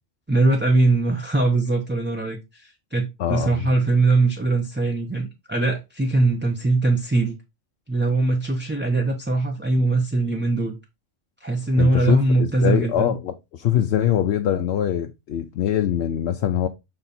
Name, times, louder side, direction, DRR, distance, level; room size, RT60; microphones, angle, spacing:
voice 1, 0.3-7.4 7.9-10.8 11.4-13.1, right 2 dB, 10° right, 0.6 m, -21 dB
voice 2, 3.2-3.7 11.8-16.7, left 10 dB, 65° left, 0.8 m, -23 dB
6.9 x 3.5 x 4.1 m
omnidirectional pair, 1.3 m